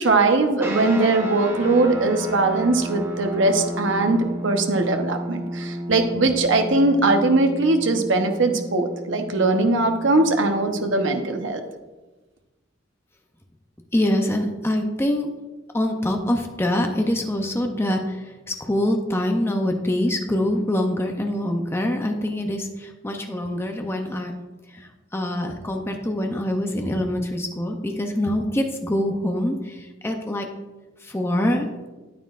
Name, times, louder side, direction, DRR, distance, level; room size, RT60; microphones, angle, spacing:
voice 1, 0.0-11.6, right 2 dB, 75° right, 5 dB, 1.0 m, -20 dB
sound 1, 0.6-11.3, right 1 dB, 15° right, 1.0 m, -33 dB
voice 2, 13.9-15.3 15.7-24.3 24.7-30.5 31.0-31.7, left 1 dB, 15° left, 3 dB, 0.6 m, -24 dB
9.5 x 9.2 x 2.5 m, 1.2 s
head